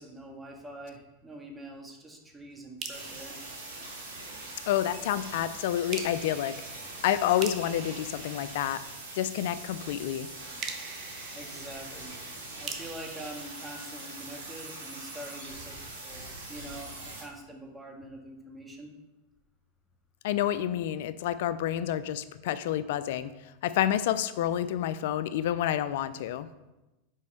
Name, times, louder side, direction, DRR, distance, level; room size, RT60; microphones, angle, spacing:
voice 1, 0.0-3.4 11.3-12.1 12.6-15.8 16.0-18.9, right 1 dB, 10° right, 0 dB, 1.6 m, -45 dB
sound 1, 2.8-4.5 5.9-9.2 10.6-14.5, right 6 dB, 45° right, 1.1 m, -44 dB
sound 2, 2.9-17.2, right 2 dB, 80° right, 2.3 m, -42 dB
voice 2, 4.7-6.5 7.0-8.8 9.2-10.3 20.2-23.3 23.6-26.5, left 11 dB, 65° left, 14 dB, 0.4 m, -29 dB
5.5 x 5.2 x 6.5 m, 1.0 s
hypercardioid pair, 100°, 0 cm